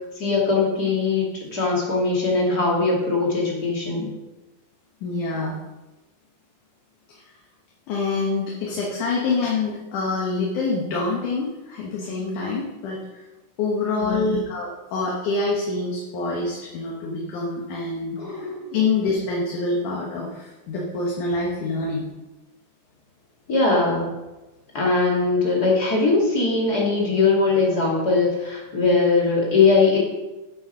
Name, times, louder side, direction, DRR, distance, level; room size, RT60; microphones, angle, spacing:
voice 1, 0.2-4.1 14.0-14.4 18.2-18.7 23.5-24.1 24.7-30.0, left 3 dB, 30° left, -3 dB, 2.4 m, -21 dB
voice 2, 5.0-5.6 7.1-7.3 7.9-13.2 13.6-22.1, left 3 dB, 70° left, -3 dB, 2.8 m, -26 dB
8.9 x 8.0 x 5.5 m, 1.1 s
omnidirectional pair, 3.9 m